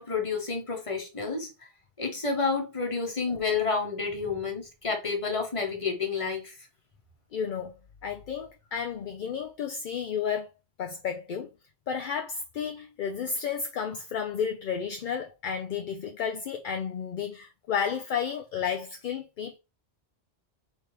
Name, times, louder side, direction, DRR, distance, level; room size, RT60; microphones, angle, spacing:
voice 1, 0.0-1.7 2.0-6.6, left 4 dB, 30° left, 1.2 m, -30 dB
voice 2, 7.3-7.7 8.0-10.5 10.8-11.5 11.9-19.6, left 7 dB, 60° left, 0.6 m, -32 dB
4.2 x 3.4 x 3.2 m
omnidirectional pair, 1.1 m